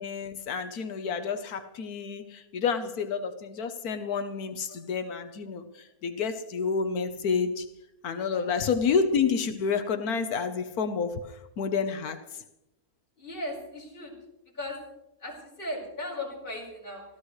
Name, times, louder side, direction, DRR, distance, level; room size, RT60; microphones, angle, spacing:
voice 1, 0.0-7.7 8.0-12.4, left 5 dB, 85° left, 1.5 m, -29 dB
voice 2, 13.2-14.1 14.5-14.8 15.2-17.0, left 1 dB, 35° left, 4.8 m, -37 dB
24.5 x 15.0 x 3.2 m
omnidirectional pair, 1.6 m